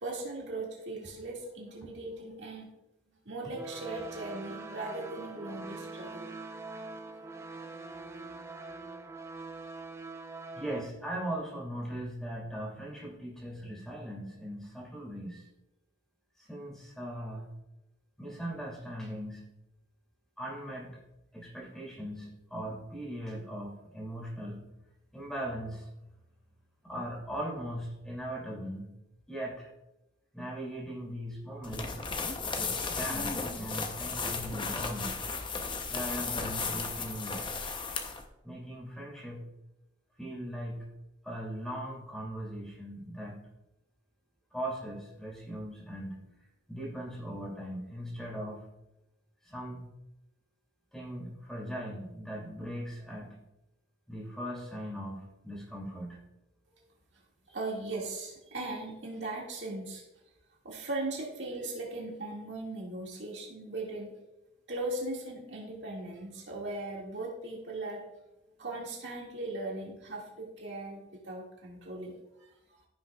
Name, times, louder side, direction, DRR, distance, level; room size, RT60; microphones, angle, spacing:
voice 1, 0.0-2.7 3.3-6.3 7.0-7.1 8.0-8.1 57.5-60.0 60.6-64.1 64.7-68.0 68.6-72.1 72.4-72.5, right 2 dB, 60° right, -3 dB, 2.0 m, -38 dB
sound 1, 3.5-10.9, right 3 dB, 15° right, 0.4 m, -43 dB
voice 2, 10.6-15.5 16.4-17.5 18.2-19.5 20.4-21.0 21.3-24.6 25.1-25.9 26.8-28.9 29.3-29.7 30.3-32.0 32.5-35.2 35.9-37.5 38.4-39.4 40.2-40.9 41.2-43.5 44.5-46.2 46.7-48.7 49.4-49.9 50.9-53.4 54.1-56.2 57.5-57.6, equal, 5° left, -4 dB, 2.5 m, -39 dB
sound 2, 31.6-38.2, left 4 dB, 25° left, 0.7 m, -35 dB
15.0 x 6.1 x 2.3 m, 0.93 s
head